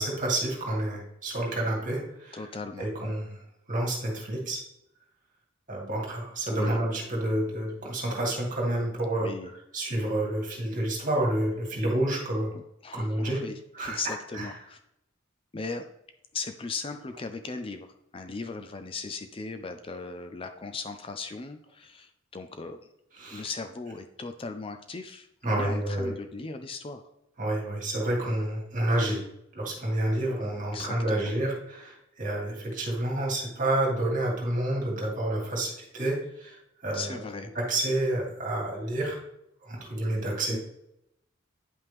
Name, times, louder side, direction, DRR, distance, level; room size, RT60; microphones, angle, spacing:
voice 1, 0.0-2.5 2.8-3.4 3.7-4.6 5.7-9.3 9.7-12.5 12.9-13.4 13.7-14.0 14.3-14.5 23.2-23.5 25.4-26.1 27.4-29.2 29.5-37.1 37.5-39.2 39.6-40.6, right 1 dB, 40° right, -2 dB, 2.3 m, -29 dB
voice 2, 2.3-2.9 6.5-6.8 9.2-9.5 12.5-14.8 15.5-15.9 16.3-17.9 18.1-22.8 23.3-27.0 30.7-31.3 36.9-37.5 40.5-40.6, left 4 dB, 25° left, 7 dB, 0.4 m, -38 dB
9.5 x 5.7 x 3.5 m, 0.81 s
head